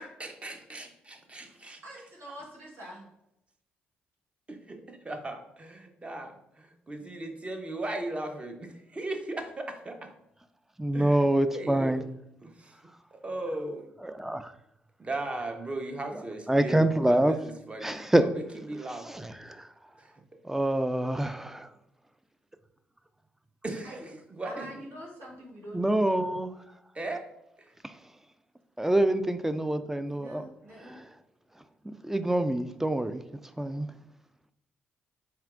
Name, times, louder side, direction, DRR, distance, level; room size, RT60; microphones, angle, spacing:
voice 1, 0.0-1.8 4.5-10.1 10.9-11.3 11.5-12.0 12.4-12.8 13.1-13.9 15.0-19.1 20.0-20.1 23.6-24.7 26.9-27.2 27.6-27.8, right 2 dB, 25° right, 0.8 m, -37 dB
voice 2, 1.8-3.1 23.8-24.1 24.4-26.0 30.1-31.0, right 1 dB, 65° right, 1.4 m, -45 dB
voice 3, 10.8-12.0 14.0-14.5 16.5-17.3 17.8-18.3 19.1-19.7 20.4-21.7 25.7-26.5 27.8-27.9 28.8-30.4 30.8-31.0 31.8-33.2 33.6-33.9, right 1 dB, 10° right, 0.4 m, -26 dB
4.3 x 3.5 x 2.5 m
hypercardioid pair, 50°, 5 cm